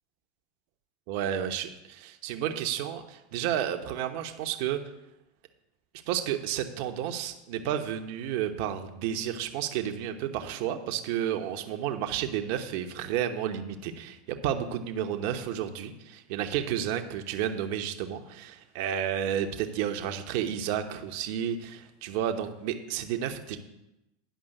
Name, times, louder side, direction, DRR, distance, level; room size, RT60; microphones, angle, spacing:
voice 1, 1.1-4.8 6.1-23.6, right 10 dB, 60° right, 7 dB, 1.0 m, -31 dB
10.0 x 5.4 x 6.7 m, 0.92 s
hypercardioid pair, 95°, 0 cm